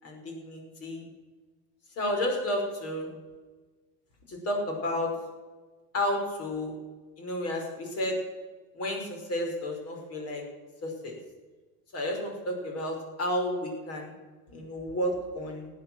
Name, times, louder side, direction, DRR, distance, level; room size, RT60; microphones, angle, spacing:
voice 1, 0.0-1.1 2.0-3.1 4.3-5.1 5.9-6.8 7.2-8.2 8.7-10.4 10.8-11.2 11.9-14.1 14.5-15.7, left 1 dB, 45° left, 1 dB, 5.2 m, -31 dB
15.5 x 9.7 x 7.7 m, 1.3 s
cardioid pair, 125°, 34 cm